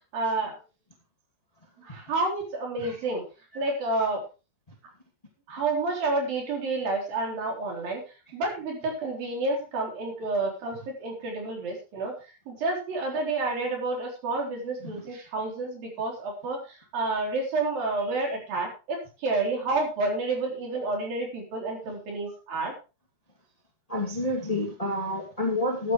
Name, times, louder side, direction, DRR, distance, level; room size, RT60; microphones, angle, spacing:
voice 1, 0.1-0.6 1.8-3.2 3.6-4.2 5.5-8.0 8.3-22.7, right 3 dB, 50° right, 0 dB, 5.2 m, -29 dB
voice 2, 23.9-25.9, left 1 dB, 20° left, 0 dB, 0.9 m, -28 dB
14.0 x 11.5 x 3.2 m, 0.31 s
omnidirectional pair, 5.5 m